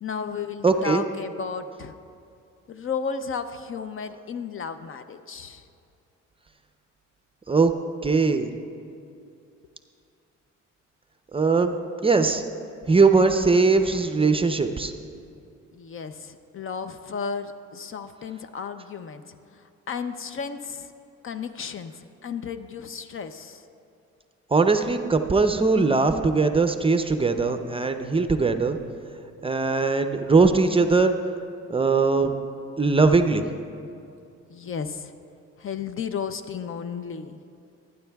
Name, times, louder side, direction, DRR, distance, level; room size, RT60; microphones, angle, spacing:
voice 1, 0.0-2.0 2.7-5.7 15.7-20.9 21.2-23.6 34.5-35.1 35.6-37.4, left 6 dB, 45° left, 10 dB, 0.6 m, -34 dB
voice 2, 0.6-1.0 7.5-7.7 8.0-8.5 11.3-11.8 12.0-12.4 12.9-14.9 24.5-28.8 29.4-31.1 31.7-32.3 32.8-33.4, right 4 dB, 20° right, 7 dB, 0.5 m, -20 dB
19.5 x 9.7 x 2.3 m, 2.5 s
cardioid pair, 90°, 30 cm